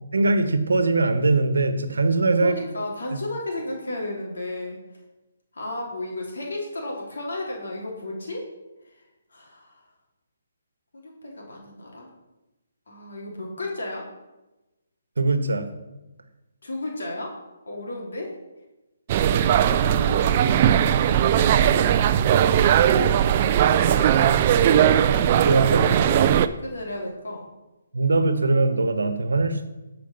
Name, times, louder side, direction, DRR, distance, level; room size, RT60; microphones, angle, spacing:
voice 1, 0.1-2.5 3.1-3.2 15.2-15.7 25.4-25.9 27.9-29.7, right 3 dB, 85° right, 9 dB, 1.2 m, -21 dB
voice 2, 2.3-4.8 5.5-8.5 8.8-9.0 9.3-9.9 10.9-12.1 12.9-14.1 16.6-17.3 17.7-18.3 19.3-21.7 23.6-26.3 26.6-27.5, left 2 dB, 80° left, -1 dB, 2.9 m, -34 dB
sound 1, 19.1-26.5, right 9 dB, 35° right, 0.5 m, -19 dB
13.5 x 5.2 x 5.3 m, 1.0 s
hypercardioid pair, 155°, 0 cm